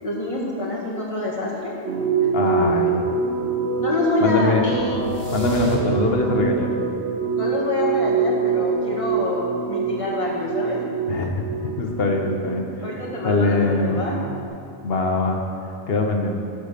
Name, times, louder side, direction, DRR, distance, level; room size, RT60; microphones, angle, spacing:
voice 1, 0.0-1.7 2.2-2.3 3.8-4.5 7.4-10.8 12.8-14.2, left 2 dB, 30° left, -4 dB, 1.8 m, -26 dB
sound 1, 1.8-14.5, right 5 dB, 75° right, 1.0 m, -25 dB
voice 2, 2.3-3.0 4.2-4.7 5.3-6.7 11.1-12.9 13.2-14.0 14.8-16.4, left 2 dB, 65° left, 3 dB, 1.2 m, -23 dB
sound 2, 4.6-6.4, left 2 dB, 80° left, 1.9 m, -30 dB
11.5 x 5.1 x 6.6 m, 2.5 s
omnidirectional pair, 1.1 m